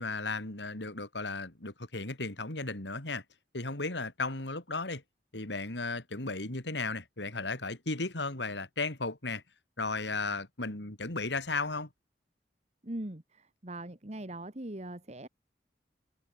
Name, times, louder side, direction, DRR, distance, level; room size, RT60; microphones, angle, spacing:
voice 1, 0.0-3.2 3.5-5.0 5.3-9.4 9.8-11.9, left 3 dB, 80° left, 3.5 m, -35 dB
voice 2, 12.8-15.3, right 1 dB, 40° right, 1.7 m, -41 dB
head